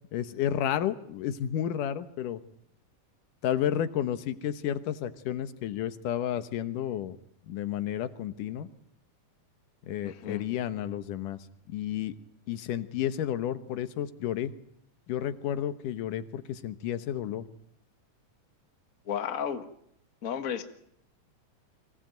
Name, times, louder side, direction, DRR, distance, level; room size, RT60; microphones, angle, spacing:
voice 1, 0.1-2.4 3.4-7.2 7.5-8.7 9.9-12.2 12.5-14.5 15.1-17.5, left 10 dB, 90° left, 12 dB, 2.7 m, -31 dB
voice 2, 10.0-10.5 19.0-19.6 20.2-20.6, left 8 dB, 35° left, 8 dB, 1.4 m, -33 dB
24.5 x 18.0 x 9.1 m, 0.72 s
omnidirectional pair, 3.6 m